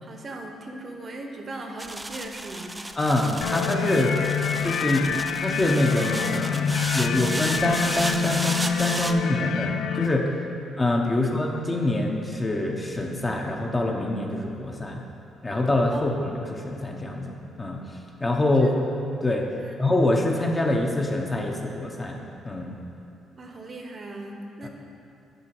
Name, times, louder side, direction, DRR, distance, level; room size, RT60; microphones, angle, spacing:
voice 1, 0.0-2.8 11.1-11.3 15.9-16.0 18.5-18.8 19.5-19.8 23.3-24.7, right 2 dB, 40° right, 3 dB, 0.8 m, -38 dB
sound 1, 1.8-9.1, right 1 dB, 15° right, 0.4 m, -34 dB
voice 2, 3.0-4.2 4.6-10.3 10.8-15.0 15.4-17.8 18.2-18.7 19.2-19.5 19.8-22.2 22.4-22.8 24.6-24.7, left 1 dB, 20° left, 1 dB, 0.9 m, -25 dB
sound 2, 3.4-10.1, left 7 dB, 80° left, 0.4 m, -27 dB
9.4 x 3.8 x 6.1 m, 2.7 s
cardioid pair, 90°, 0 cm